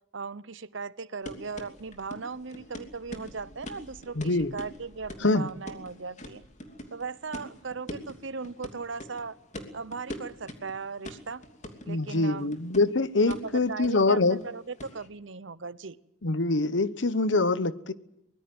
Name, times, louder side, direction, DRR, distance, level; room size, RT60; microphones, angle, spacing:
voice 1, 0.1-6.4 6.9-9.4 9.7-11.4 11.8-12.5 13.3-16.0, right 4 dB, 75° right, 1.0 m, -38 dB
sound 1, 1.2-15.1, equal, 35° left, 2.9 m, -44 dB
voice 2, 4.1-4.5 5.2-5.5 11.9-14.4 16.2-17.9, left 3 dB, 70° left, 1.1 m, -24 dB
24.0 x 21.0 x 7.9 m
head